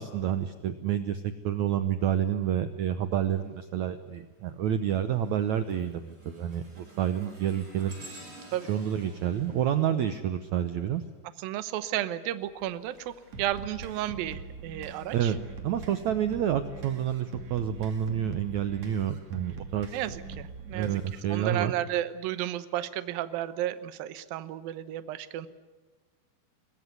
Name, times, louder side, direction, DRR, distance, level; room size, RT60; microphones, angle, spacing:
voice 1, 0.0-8.0 8.7-11.0 15.1-15.4 15.6-20.0 20.7-21.7, right 10 dB, 90° right, 10 dB, 1.6 m, -29 dB
sound 1, 3.3-3.7 4.2-11.0 12.3-14.5 15.1-15.3 16.2-16.3, right 1 dB, 25° right, 5.9 m, -53 dB
voice 2, 11.4-15.3 19.9-21.0 21.3-25.5, right 13 dB, 70° right, 13 dB, 2.6 m, -33 dB
sound 2, 13.3-21.3, right 4 dB, 45° right, 3.3 m, -43 dB
22.5 x 21.5 x 9.5 m, 1.2 s
omnidirectional pair, 4.7 m